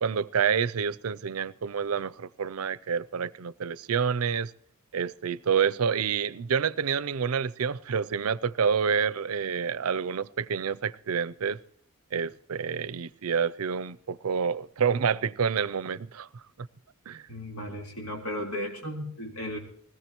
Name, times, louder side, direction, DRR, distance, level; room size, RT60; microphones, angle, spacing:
voice 1, 0.0-4.5 4.9-11.6 12.1-16.3 17.1-17.2, right 6 dB, 80° right, 0.5 m, -28 dB
voice 2, 17.3-19.6, equal, 85° left, 3.9 m, -35 dB
20.5 x 18.0 x 3.0 m
head